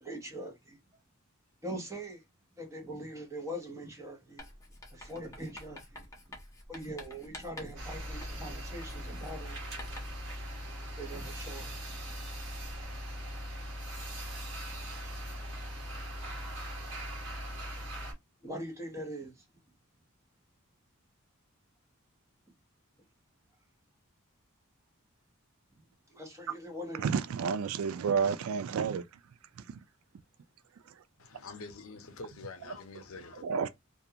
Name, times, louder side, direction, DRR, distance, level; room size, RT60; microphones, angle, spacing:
voice 1, 0.0-0.8 1.6-2.2 2.6-4.4 4.9-6.0 6.7-9.6 11.0-11.8 18.4-19.3 26.1-27.0, equal, 15° right, 0.9 m, -42 dB
Writing, 4.4-10.3, left 1 dB, 15° left, 0.6 m, -49 dB
sound 1, 7.8-18.1, equal, 55° right, 1.1 m, -40 dB
voice 2, 26.9-29.0 29.6-29.8 33.4-33.7, right 6 dB, 75° right, 0.3 m, -30 dB
voice 3, 31.2-33.5, left 3 dB, 70° left, 0.6 m, -46 dB
2.4 x 2.3 x 2.7 m
head